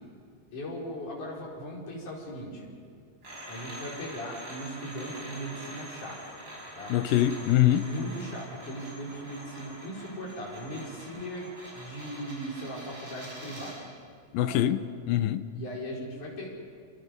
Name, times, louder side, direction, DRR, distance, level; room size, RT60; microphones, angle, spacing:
voice 1, 0.5-2.7 3.5-6.2 6.8-6.9 7.8-13.8 14.4-14.6 15.5-16.5, equal, 60° left, 6.2 m, -38 dB
sound 1, 3.2-13.9, equal, 30° right, 7.0 m, -45 dB
voice 2, 6.9-7.8 14.3-15.5, left 12 dB, 80° left, 2.6 m, -24 dB
28.0 x 26.0 x 5.4 m
omnidirectional pair, 4.1 m